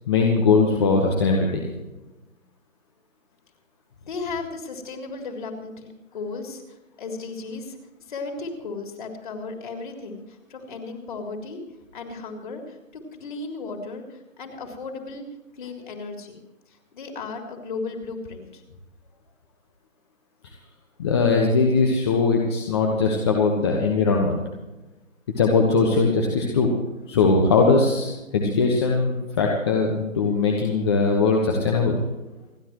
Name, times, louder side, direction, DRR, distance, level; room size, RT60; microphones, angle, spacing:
voice 1, 0.1-1.6 21.0-24.4 25.4-26.7 27.1-32.0, left 4 dB, 20° left, 1 dB, 1.3 m, -20 dB
voice 2, 4.1-7.8 8.1-11.6 11.9-15.2 15.5-16.4 16.9-18.6, left 3 dB, 35° left, 2 dB, 3.5 m, -35 dB
29.0 x 11.0 x 3.1 m, 1.0 s
figure-of-eight pair, 160°, 41 cm